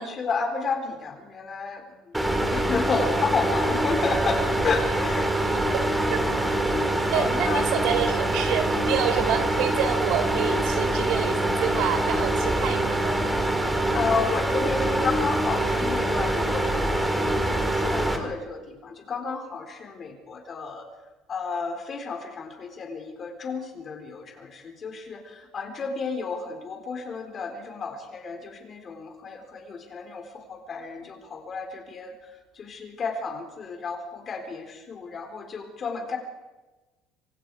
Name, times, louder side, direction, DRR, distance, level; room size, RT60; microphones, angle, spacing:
voice 1, 0.0-2.2 2.5-5.3 7.1-7.7 13.9-20.9 21.3-32.1 32.6-36.2, left 4 dB, 30° left, 4 dB, 4.2 m, -31 dB
sound 1, 2.1-18.2, right 1 dB, 5° right, 2.6 m, -25 dB
voice 2, 5.5-5.8 6.1-6.2 7.1-13.4, right 8 dB, 65° right, 7 dB, 3.8 m, -28 dB
26.5 x 26.0 x 4.9 m, 1.2 s
cardioid pair, 165°, 0 cm